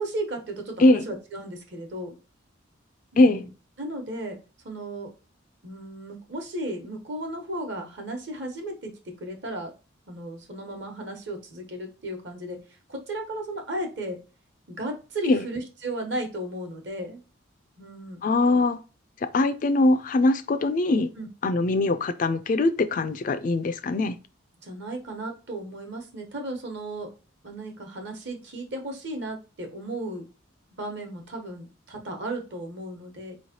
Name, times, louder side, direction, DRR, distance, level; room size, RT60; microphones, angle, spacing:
voice 1, 0.0-2.2 3.1-3.5 3.8-4.4 4.6-5.1 5.6-9.7 10.1-12.6 12.9-14.2 14.7-17.2 17.8-18.2 21.2-21.3 24.6-27.1 27.4-30.3 30.8-33.3, right 1 dB, 55° right, 1.1 m, -35 dB
voice 2, 18.2-18.8 19.2-21.1 21.4-24.2, left 2 dB, 40° left, 0.3 m, -22 dB
4.3 x 3.1 x 2.8 m
head